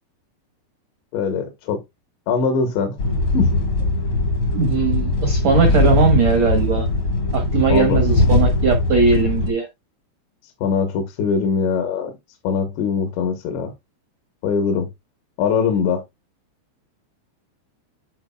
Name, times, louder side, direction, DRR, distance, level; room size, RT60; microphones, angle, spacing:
voice 1, 1.1-1.8 2.3-3.0 3.3-3.5 7.7-8.0 10.6-12.1 12.5-13.7 14.4-14.9 15.4-16.0, left 6 dB, 75° left, 3.4 m, -21 dB
sound 1, 3.0-9.5, left 2 dB, 60° left, 1.3 m, -19 dB
voice 2, 4.5-6.9 7.3-9.7, right 5 dB, 80° right, 1.5 m, -19 dB
12.5 x 4.6 x 2.3 m
omnidirectional pair, 5.2 m